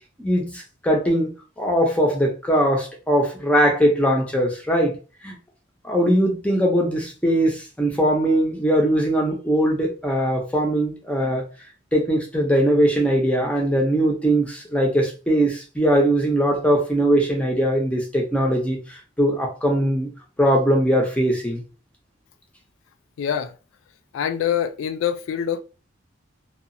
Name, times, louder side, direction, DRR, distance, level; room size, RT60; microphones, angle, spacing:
voice 1, 0.2-1.3 1.6-5.0 5.2-5.4 5.8-11.4 11.9-20.1 20.4-21.6, equal, 5° left, 0.6 m, -20 dB
voice 2, 23.2-23.6 24.1-25.6, left 9 dB, 80° left, 0.3 m, -25 dB
2.8 x 2.3 x 2.6 m
head